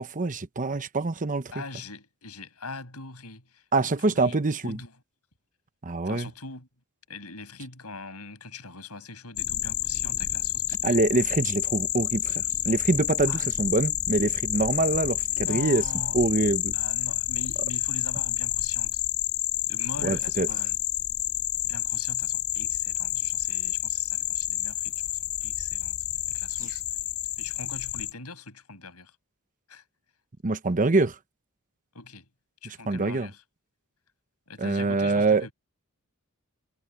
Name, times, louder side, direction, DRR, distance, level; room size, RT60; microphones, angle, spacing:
voice 1, 0.0-1.5 3.7-4.8 5.8-6.3 10.8-15.8 16.1-16.8 20.0-20.5 30.4-31.1 32.6-33.3 34.6-35.4, right 3 dB, 35° right, 0.9 m, -25 dB
voice 2, 1.5-4.9 6.0-6.7 7.1-11.0 13.2-13.5 15.3-16.2 16.7-19.0 19.7-20.8 21.6-25.9 26.3-26.8 27.4-29.1 29.7-29.8 31.9-32.3 32.6-33.4 34.5-35.5, left 3 dB, 80° left, 7.0 m, -42 dB
sound 1, 9.4-28.1, left 13 dB, 50° left, 6.7 m, -29 dB
head